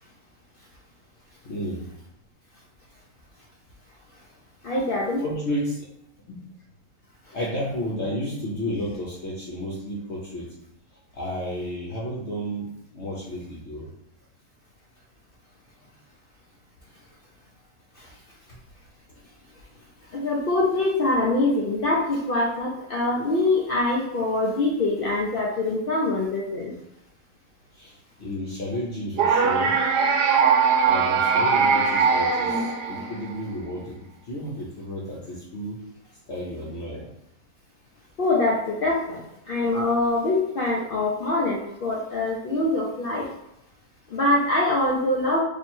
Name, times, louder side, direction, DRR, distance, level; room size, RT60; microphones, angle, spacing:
voice 1, 1.4-1.9 5.2-5.9 6.3-6.4 7.3-10.5 10.9-13.9 18.5-18.6 27.7-29.8 30.8-35.8 36.3-37.1, equal, 55° left, -5 dB, 0.9 m, -32 dB
voice 2, 4.6-5.2 18.0-18.1 20.1-26.7 38.2-43.3 44.1-45.4, left 2 dB, 85° left, -4 dB, 0.4 m, -24 dB
sound 1, 29.2-33.4, right 5 dB, 80° right, 1.3 m, -21 dB
2.8 x 2.7 x 4.3 m, 0.81 s
omnidirectional pair, 1.8 m